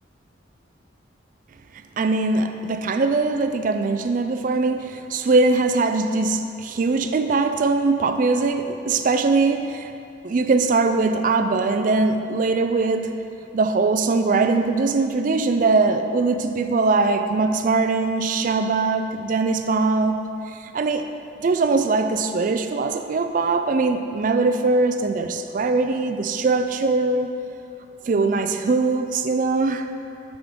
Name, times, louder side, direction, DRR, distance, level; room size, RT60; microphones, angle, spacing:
voice 1, 2.0-9.9 10.2-13.2 13.5-20.2 20.5-21.1 21.4-27.3 28.0-29.9, right 3 dB, 45° right, 8 dB, 0.3 m, -21 dB
8.4 x 5.0 x 3.7 m, 2.6 s
head